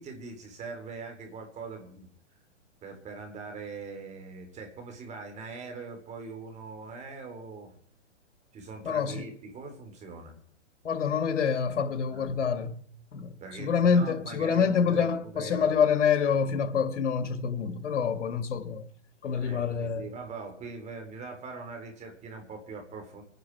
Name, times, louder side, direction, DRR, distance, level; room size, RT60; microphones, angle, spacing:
voice 1, 0.0-2.1 2.8-7.7 8.5-10.4 12.1-12.3 13.4-15.7 19.4-23.2, right 4 dB, 20° right, 3.7 m, -42 dB
voice 2, 8.8-9.2 10.8-12.8 13.1-13.3 13.6-18.9 19.2-20.1, left 6 dB, 80° left, 2.1 m, -26 dB
25.0 x 10.5 x 4.7 m
hypercardioid pair, 140°, 36 cm